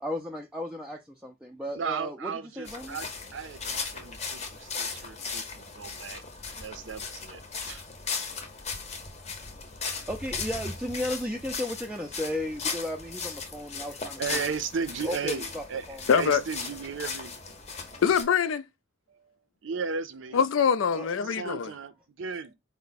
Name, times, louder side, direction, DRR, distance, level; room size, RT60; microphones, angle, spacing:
voice 1, 0.0-3.0 10.1-14.4 15.0-16.0 20.9-21.1, left 1 dB, 5° right, 0.3 m, -35 dB
voice 2, 1.8-6.2 6.5-7.8 14.2-17.3 17.9-18.0 19.1-19.3 19.6-20.4 21.2-22.5, right 5 dB, 70° right, 0.5 m, -35 dB
sound 1, 2.6-18.2, left 5 dB, 30° left, 0.6 m, -37 dB
voice 3, 16.1-16.4 18.0-18.6 20.3-21.7, left 7 dB, 85° left, 0.4 m, -23 dB
4.4 x 2.1 x 3.9 m
head